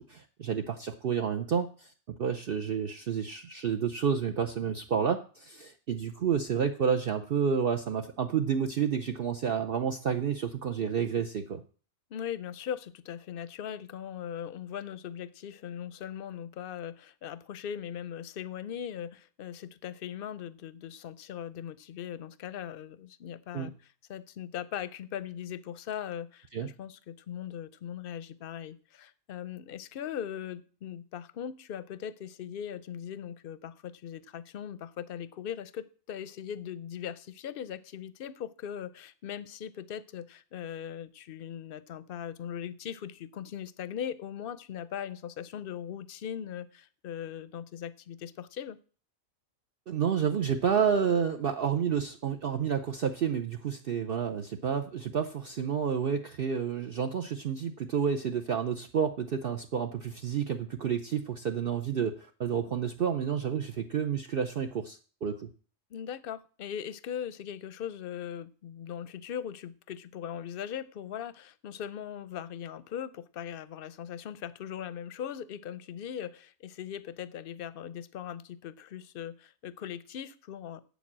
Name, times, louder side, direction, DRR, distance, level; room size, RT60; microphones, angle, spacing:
voice 1, 0.0-1.9 2.2-11.6 23.5-23.7 26.5-26.7 49.9-65.5, right 7 dB, 55° right, 5 dB, 0.8 m, -30 dB
voice 2, 12.1-23.7 24.1-48.8 65.9-80.8, left 9 dB, 55° left, 16 dB, 0.7 m, -39 dB
8.2 x 7.3 x 7.4 m, 0.40 s
omnidirectional pair, 1.3 m